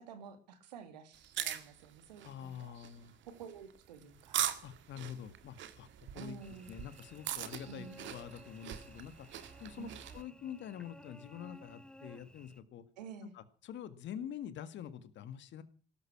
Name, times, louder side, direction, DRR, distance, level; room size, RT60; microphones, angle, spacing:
voice 1, 0.0-2.7 3.3-4.4 6.1-6.7 7.7-8.1 9.8-10.0 13.0-13.3, right 7 dB, 90° right, 10 dB, 2.2 m, -50 dB
sound 1, 1.1-10.2, right 11 dB, 65° right, 2.0 m, -42 dB
voice 2, 2.2-3.2 4.6-5.9 6.1-6.4 6.7-9.3 9.6-12.8 13.2-15.6, left 9 dB, 65° left, 13 dB, 2.0 m, -46 dB
Cricket / Buzz, 6.4-12.6, left 1 dB, 5° left, 2.5 m, -56 dB
17.5 x 13.5 x 6.0 m, 0.41 s
hypercardioid pair, 55°, 21 cm